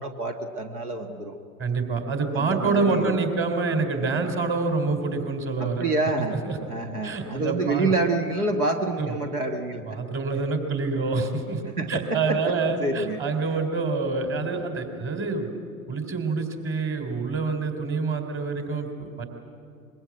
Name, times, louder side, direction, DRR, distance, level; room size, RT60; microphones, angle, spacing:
voice 1, 0.0-1.4 2.4-3.2 5.6-6.4 6.7-10.0 11.8-12.4 12.8-13.2, right 2 dB, 80° right, 5 dB, 1.7 m, -27 dB
voice 2, 1.6-5.8 6.4-6.6 7.0-7.9 9.0-9.1 9.8-15.5 15.9-19.2, right 4 dB, 30° right, 6 dB, 3.8 m, -27 dB
24.0 x 22.5 x 8.7 m, 2.3 s
figure-of-eight pair, 90°, 44 cm